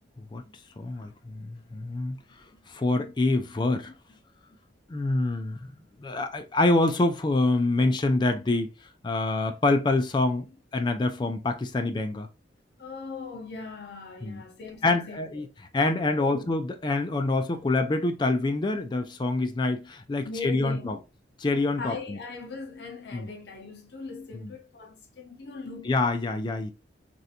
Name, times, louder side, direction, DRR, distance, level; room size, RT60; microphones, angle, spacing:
voice 1, 0.8-2.2 2.7-3.9 4.9-5.7 6.0-8.7 9.0-12.3 14.2-14.4 14.8-15.5 15.7-21.0 21.4-22.2 23.1-23.3 24.3-24.5 25.9-26.7, left 2 dB, 25° left, 0.3 m, -26 dB
voice 2, 12.8-15.4 16.2-16.5 20.2-21.0 21.8-25.9, left 4 dB, 60° left, 0.7 m, -40 dB
3.3 x 2.5 x 2.7 m
head